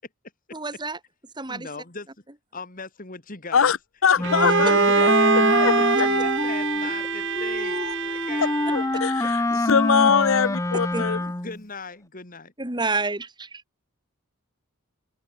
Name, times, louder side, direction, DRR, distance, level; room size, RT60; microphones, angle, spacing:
voice 1, 0.5-1.0 1.4-1.7 4.4-4.5 9.2-9.3 10.9-11.1 12.6-13.6, right 3 dB, 20° right, 2.5 m, -29 dB
voice 2, 1.5-2.1 2.5-3.7 4.8-8.6 11.3-12.5, left 4 dB, 40° left, 2.4 m, -39 dB
voice 3, 4.0-5.7 6.0-6.4 7.6-7.9 8.4-11.2, left 6 dB, 65° left, 0.6 m, -23 dB
Wind instrument woodwind instrument, 4.2-11.6, left 2 dB, 15° left, 0.6 m, -26 dB
Bowed string instrument, 4.2-9.0, right 5 dB, 55° right, 1.0 m, -23 dB
head